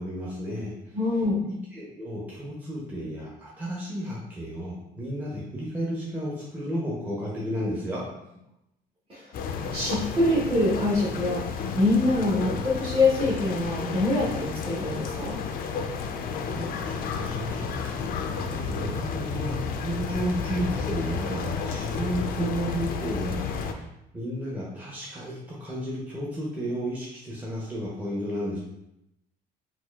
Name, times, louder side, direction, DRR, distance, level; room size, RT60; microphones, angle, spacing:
voice 1, 0.0-1.0 1.4-8.0 16.5-17.9 18.4-23.9 24.1-28.6, equal, 10° right, -5 dB, 0.7 m, -33 dB
voice 2, 0.9-1.4 9.1-9.3 9.7-11.4 11.8-15.4, left 2 dB, 30° right, -9 dB, 0.9 m, -24 dB
sound 1, 9.3-23.7, left 5 dB, 60° left, 0.4 m, -32 dB
4.1 x 2.4 x 2.3 m, 0.86 s
cardioid pair, 110°, 17 cm